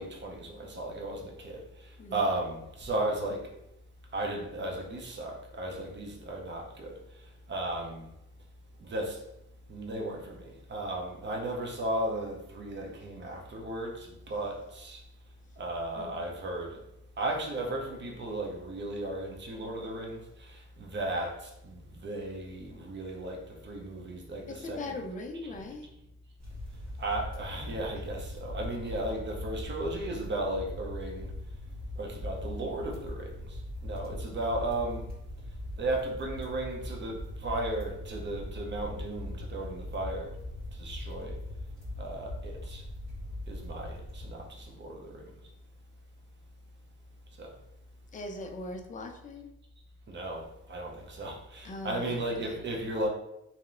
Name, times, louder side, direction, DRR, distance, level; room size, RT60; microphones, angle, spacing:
voice 1, 0.0-3.5 4.1-7.0 7.5-8.1 8.8-9.2 9.7-15.0 15.6-16.8 17.2-25.0 25.4-25.6 27.0-31.3 32.0-35.1 35.8-40.3 40.7-41.4 42.0-42.8 43.5-45.2 47.4-47.5 50.1-53.1, right 1 dB, 35° right, 0 dB, 0.6 m, -35 dB
voice 2, 2.0-2.3 16.0-16.3 24.5-25.9 48.1-49.5 51.6-52.6, left 2 dB, 25° left, 3 dB, 0.4 m, -40 dB
sound 1, 26.4-44.7, left 1 dB, 60° right, 1.4 m, -40 dB
2.7 x 2.0 x 2.4 m, 0.85 s
cardioid pair, 90°, 30 cm